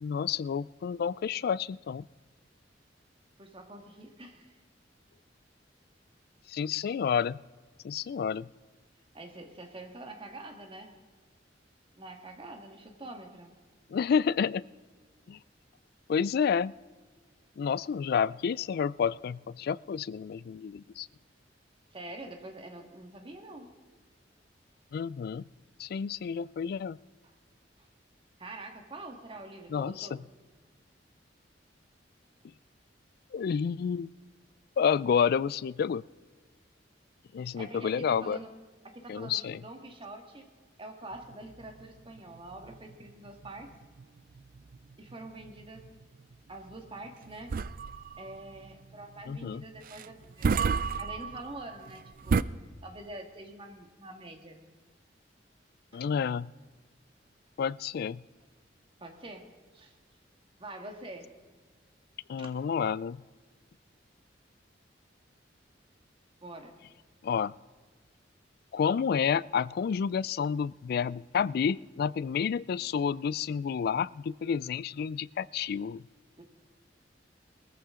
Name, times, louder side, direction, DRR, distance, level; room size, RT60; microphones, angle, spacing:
voice 1, 0.0-2.1 6.5-7.4 7.8-8.5 13.9-14.6 15.3-15.4 16.1-16.7 17.6-21.1 24.9-25.4 25.8-27.0 29.7-30.2 33.3-34.1 34.8-36.0 37.3-38.4 39.1-39.6 49.3-49.6 55.9-56.5 57.6-58.2 62.3-63.2 67.2-67.5 68.7-76.0, left 7 dB, 55° left, 21 dB, 0.3 m, -30 dB
voice 2, 3.4-4.5 9.1-10.9 12.0-13.5 21.9-23.7 27.2-27.3 27.8-27.9 28.4-30.3 37.5-38.5 38.8-40.5 40.8-43.7 45.0-45.9 46.5-47.6 48.2-50.5 51.0-52.5 52.8-54.6 55.9-56.1 59.0-59.9 60.6-61.3 62.4-62.5 66.4-66.7 76.4-76.5, right 2 dB, 30° right, 4 dB, 1.7 m, -45 dB
sound 1, 41.1-52.4, right 5 dB, 50° right, 0.4 m, -34 dB
20.5 x 14.5 x 3.7 m, 1.4 s
head